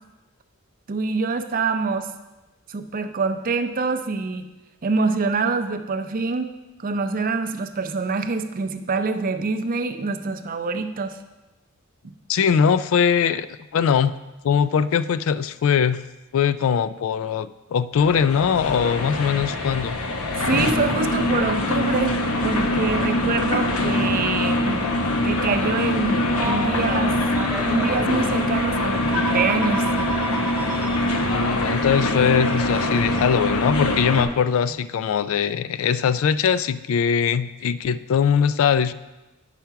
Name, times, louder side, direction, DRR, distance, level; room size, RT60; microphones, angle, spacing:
voice 1, 0.9-2.1 2.7-4.5 4.8-6.5 6.8-11.2 20.3-24.9 25.2-27.2 27.6-29.9, right 4 dB, 40° right, 8 dB, 0.5 m, -25 dB
voice 2, 12.3-13.5 13.7-14.1 14.4-16.0 16.3-20.0 31.3-38.9, left 7 dB, 65° left, 15 dB, 0.3 m, -21 dB
sound 1, 17.9-34.2, left 1 dB, 85° left, 0.9 m, -23 dB
Telephone, 26.3-28.2 29.1-31.0 32.3-32.5 34.0-34.2, right 4 dB, 10° right, 0.9 m, -31 dB
9.1 x 5.8 x 4.6 m, 1.1 s
head